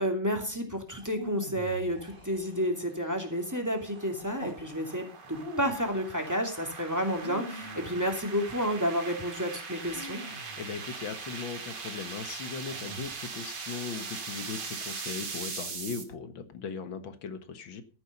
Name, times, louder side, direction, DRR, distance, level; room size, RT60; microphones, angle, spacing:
voice 1, 0.0-10.2, equal, 10° right, 3 dB, 2.6 m, -31 dB
sound 1, 0.9-2.9 4.1-4.6 5.3-6.0 7.0-8.4 9.9-11.1 12.7-13.4, right 1 dB, 25° right, 3.4 m, -44 dB
sound 2, 2.1-16.0, right 5 dB, 65° right, 2.7 m, -41 dB
voice 2, 10.6-17.8, left 5 dB, 90° left, 9 dB, 2.2 m, -38 dB
13.5 x 10.0 x 5.4 m, 0.36 s
omnidirectional pair, 2.1 m